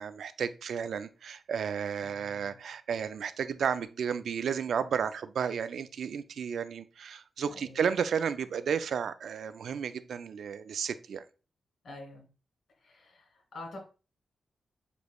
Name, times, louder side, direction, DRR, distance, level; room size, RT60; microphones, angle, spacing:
voice 1, 0.0-11.2, right 7 dB, 85° right, 0.3 m, -33 dB
voice 2, 2.0-2.6 7.5-7.8 11.8-12.3 12.8-13.8, left 2 dB, 70° left, 2.5 m, -47 dB
6.8 x 3.0 x 2.2 m
cardioid pair, 90°, 0 cm